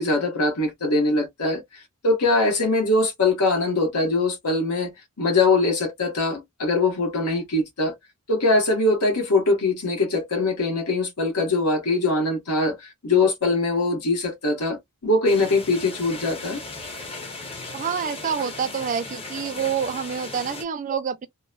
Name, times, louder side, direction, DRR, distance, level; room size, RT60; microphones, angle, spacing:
voice 1, 0.0-7.9 8.3-16.6, left 2 dB, 85° left, 1.1 m, -22 dB
sound 1, 15.2-20.6, left 3 dB, 25° left, 0.6 m, -37 dB
voice 2, 17.7-21.3, right 7 dB, 35° right, 0.4 m, -27 dB
2.9 x 2.0 x 2.2 m
head